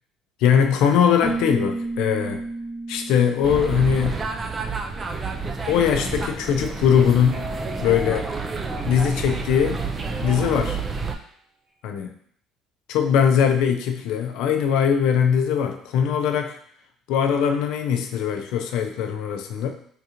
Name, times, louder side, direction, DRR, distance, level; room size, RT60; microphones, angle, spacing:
voice 1, 0.4-2.4 2.9-4.2 5.7-7.5 7.8-8.3 8.8-9.8 10.2-10.8 11.8-12.1 12.9-16.6 17.1-19.7, left 8 dB, 75° left, 6 dB, 0.4 m, -21 dB
Keyboard (musical), 1.2-4.8, right 2 dB, 10° left, 0.7 m, -32 dB
sound 1, 3.4-11.1, right 4 dB, 30° right, 0.4 m, -29 dB
beautiful or ominous music box, 7.3-11.3, right 1 dB, 70° right, 1.4 m, -40 dB
3.6 x 2.4 x 2.9 m, 0.64 s
supercardioid pair, 95°, 0 cm